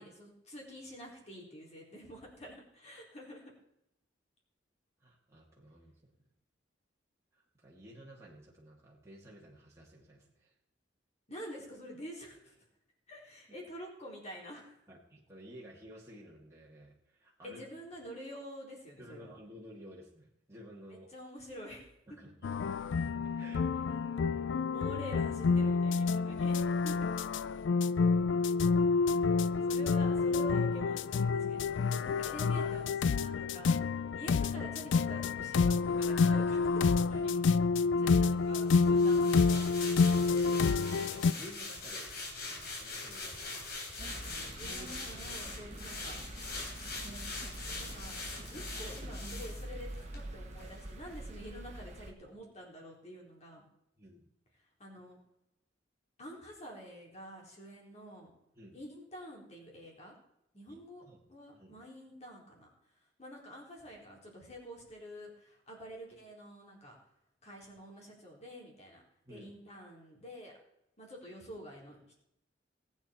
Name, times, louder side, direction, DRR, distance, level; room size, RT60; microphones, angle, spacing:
voice 1, 0.0-3.5 11.3-12.5 13.1-14.8 17.4-19.3 20.9-21.9 24.7-26.5 26.8-27.1 29.7-39.6 44.6-46.2 47.6-53.6 54.8-55.2 56.2-58.3 58.7-60.1 60.5-61.0 61.3-62.7 63.2-67.0 67.4-69.0 69.3-70.5 71.0-72.1, equal, 35° left, -1 dB, 3.9 m, -48 dB
voice 2, 5.0-6.3 7.3-10.6 13.5-13.6 14.9-17.7 19.0-21.1 22.1-22.8 23.3-23.7 26.4-26.5 26.9-27.1 27.8-27.9 29.1-29.8 40.6-43.8 54.0-54.2 58.5-58.8 60.7-61.3 61.5-61.8 69.2-69.5, equal, 15° right, -5 dB, 2.3 m, -54 dB
sound 1, 22.4-41.3, left 4 dB, 80° left, 0.4 m, -28 dB
sound 2, 38.7-50.2 50.6-50.7, left 3 dB, 55° left, 3.6 m, -43 dB
sound 3, 44.0-52.1, right 1 dB, 40° right, 1.5 m, -45 dB
19.0 x 8.9 x 4.4 m, 0.80 s
head